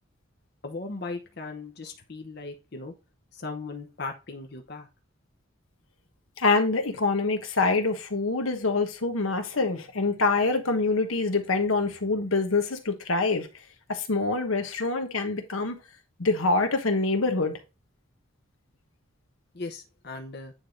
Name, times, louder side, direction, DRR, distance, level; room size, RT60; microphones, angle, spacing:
voice 1, 0.6-2.9 3.3-4.9 19.5-20.5, left 3 dB, 50° left, 0.9 m, -38 dB
voice 2, 6.4-13.5 13.9-15.8 16.2-17.6, left 3 dB, 85° left, 1.3 m, -25 dB
9.1 x 3.4 x 3.8 m
head